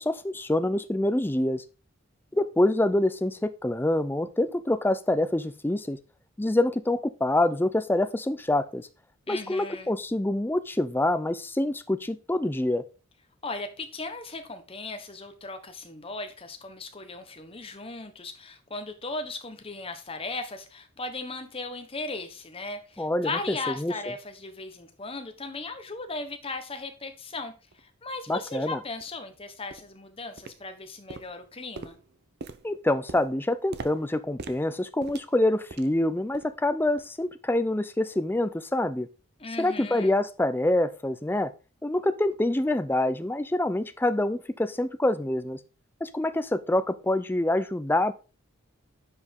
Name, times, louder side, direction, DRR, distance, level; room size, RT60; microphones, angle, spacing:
voice 1, 0.0-1.6 2.3-6.0 6.4-8.9 9.3-12.8 23.0-23.3 23.7-23.9 28.3-28.8 32.6-39.1 39.6-41.5 41.8-45.6 46.0-48.1, left 1 dB, 10° left, 11 dB, 0.5 m, -26 dB
voice 2, 9.3-9.9 13.4-31.9 39.4-40.2, left 3 dB, 25° left, 7 dB, 1.1 m, -37 dB
sound 1, 27.7-27.8 28.4-28.5 29.0-29.2 29.7-30.0 30.4-30.8 31.1-36.0 36.3-36.6 37.0-37.2 37.7-37.8, right 3 dB, 50° right, 0.6 m, -44 dB
9.6 x 5.1 x 3.6 m, 0.34 s
head